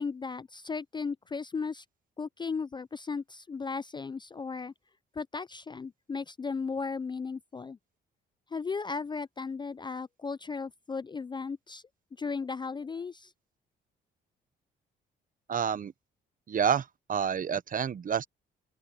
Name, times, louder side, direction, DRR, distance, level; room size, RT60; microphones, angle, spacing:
voice 1, 0.0-1.8 2.2-4.7 5.2-7.8 8.5-11.8 12.2-13.3, left 5 dB, 25° left, 0.4 m, -36 dB
voice 2, 15.5-15.9 16.5-18.3, right 7 dB, 45° right, 0.9 m, -29 dB
open air
cardioid pair, 90°, 20 cm